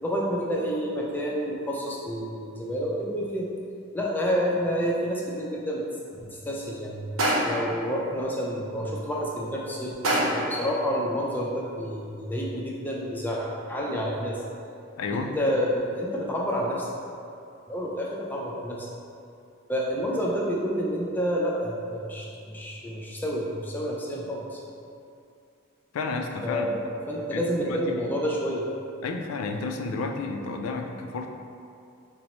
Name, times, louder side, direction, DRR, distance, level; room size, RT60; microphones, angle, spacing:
voice 1, 0.0-3.5 3.9-5.8 6.2-7.1 7.4-14.4 15.1-16.9 17.7-18.9 19.7-24.6 26.4-28.7, equal, 10° left, -3 dB, 0.4 m, -29 dB
sound 1, 7.2-7.8 10.0-10.6, right 1 dB, 85° right, 0.7 m, -24 dB
voice 2, 15.0-15.3 25.9-26.8 27.3-28.1 29.0-31.3, left 3 dB, 90° left, 4 dB, 0.3 m, -31 dB
5.1 x 2.0 x 2.9 m, 2.5 s
head